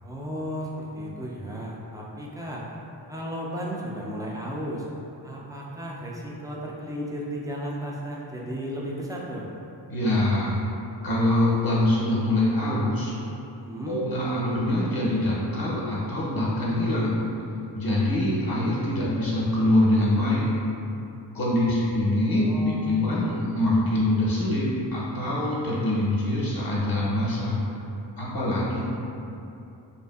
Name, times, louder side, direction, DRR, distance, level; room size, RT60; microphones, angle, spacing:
voice 1, 0.0-2.6 3.1-4.9 5.2-9.5 13.6-14.0 22.4-22.9 23.2-23.4, equal, 10° right, -4 dB, 0.3 m, -34 dB
voice 2, 9.9-10.6 11.0-13.1 13.9-17.2 17.7-20.5 21.3-27.6 28.2-28.8, left 1 dB, 55° left, -6 dB, 0.7 m, -24 dB
2.5 x 2.5 x 2.3 m, 2.8 s
cardioid pair, 60°, 43 cm